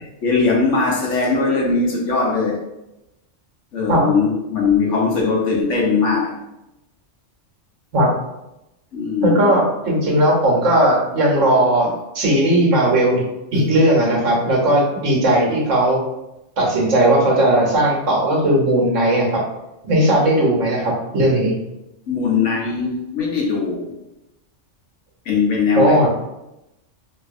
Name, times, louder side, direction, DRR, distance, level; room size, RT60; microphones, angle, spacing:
voice 1, 0.0-2.6 3.7-6.4 8.9-9.6 22.1-23.9 25.3-26.1, left 4 dB, 75° left, -2 dB, 1.2 m, -20 dB
voice 2, 9.2-11.9 12.1-13.2 13.5-16.0 16.6-19.4 19.8-21.5 25.7-26.1, right 1 dB, 85° right, -2 dB, 1.4 m, -17 dB
4.2 x 2.6 x 2.5 m, 0.91 s
omnidirectional pair, 1.3 m